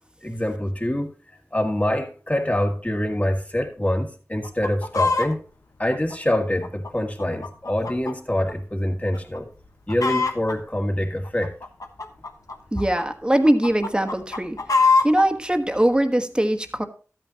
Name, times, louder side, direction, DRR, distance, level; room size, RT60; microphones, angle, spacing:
voice 1, 0.2-1.1 1.5-5.4 5.8-9.5 9.9-11.6, left 1 dB, 25° left, 3 dB, 1.9 m, -25 dB
Chicken rooster, 4.4-5.3 5.9-8.2 8.5-8.6 9.1-9.4 9.6-10.5 11.2-13.0 13.4-15.2 15.9-16.0, left 4 dB, 80° left, 1.2 m, -23 dB
voice 2, 12.7-14.6 15.0-16.8, right 1 dB, 15° right, 7 dB, 1.3 m, -21 dB
13.0 x 9.0 x 2.9 m, 0.37 s
wide cardioid pair, 55°, 6 cm